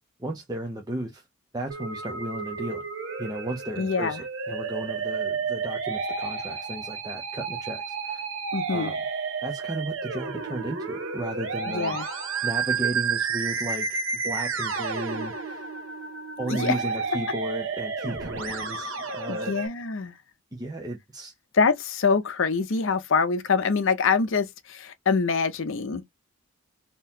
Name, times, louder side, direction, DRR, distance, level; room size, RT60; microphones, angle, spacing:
voice 1, 0.2-1.2 1.5-2.9 3.2-8.2 8.7-9.0 9.4-15.7 16.4-19.6 20.5-21.3, right 1 dB, 15° right, 0.5 m, -34 dB
Musical instrument, 1.7-19.7, right 5 dB, 60° right, 0.9 m, -31 dB
voice 2, 3.8-4.2 8.5-8.9 11.7-12.1 16.5-16.7 18.5-18.6 19.3-20.1 21.5-26.0, left 5 dB, 60° left, 0.5 m, -25 dB
3.7 x 2.8 x 2.7 m
head